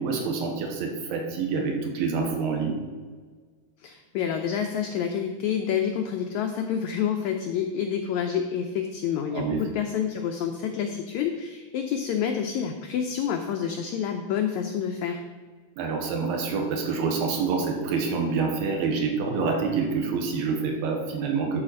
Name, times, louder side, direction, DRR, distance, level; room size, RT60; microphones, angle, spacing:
voice 1, 0.0-2.8 9.3-9.6 15.8-21.6, right 4 dB, 85° right, 2 dB, 3.0 m, -27 dB
voice 2, 3.8-15.2, left 8 dB, 90° left, 5 dB, 1.6 m, -28 dB
11.5 x 4.1 x 6.3 m, 1.5 s
omnidirectional pair, 4.1 m